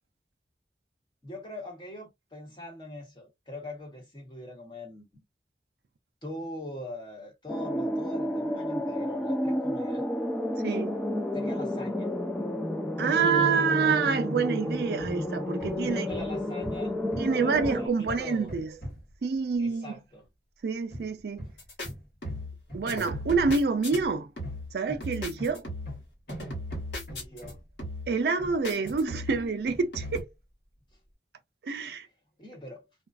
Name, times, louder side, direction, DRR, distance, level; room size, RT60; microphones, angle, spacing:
voice 1, 1.2-5.1 6.2-10.0 11.3-12.1 15.9-16.9 17.3-18.5 19.6-20.3 27.1-27.6 32.4-32.9, left 1 dB, 25° left, 1.1 m, -42 dB
sound 1, 7.5-17.9, left 1 dB, 5° left, 0.3 m, -31 dB
voice 2, 10.6-11.0 13.0-16.1 17.2-18.7 19.2-20.0 20.6-21.5 22.7-24.3 24.7-25.6 28.1-30.3 31.6-32.1, right 5 dB, 65° right, 0.4 m, -27 dB
Hammer, 15.0-15.3 15.6-19.2 20.9-27.8 28.4-30.3, equal, 60° left, 1.3 m, -42 dB
sound 2, 21.6-21.9 22.2-22.6 22.9-24.0 24.4-24.7 25.0-26.0 26.3-27.5 27.8-28.2 28.6-29.5 29.9-30.2, left 1 dB, 80° left, 1.3 m, -37 dB
2.4 x 2.3 x 2.3 m
head